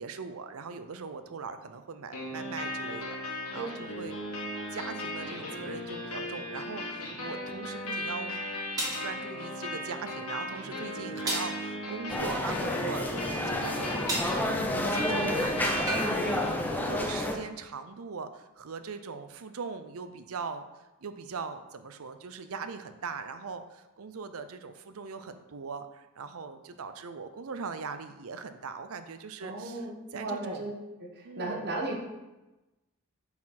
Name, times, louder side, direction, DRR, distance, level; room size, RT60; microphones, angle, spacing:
voice 1, 0.0-4.1 4.7-8.3 9.0-14.2 14.7-20.7 21.0-30.7 31.2-31.6, right 5 dB, 75° right, 9 dB, 0.6 m, -40 dB
sound 1, 2.1-17.1, left 1 dB, 85° left, 1.9 m, -37 dB
sound 2, 8.8-9.1 11.3-11.6 14.1-14.4 15.9-16.1, right 1 dB, 15° right, 1.7 m, -31 dB
sound 3, 12.1-17.4, left 1 dB, 10° left, 0.5 m, -30 dB
voice 2, 29.4-30.7 31.0-32.0, right 2 dB, 50° right, 0 dB, 1.1 m, -35 dB
8.6 x 4.2 x 4.3 m, 1.0 s
head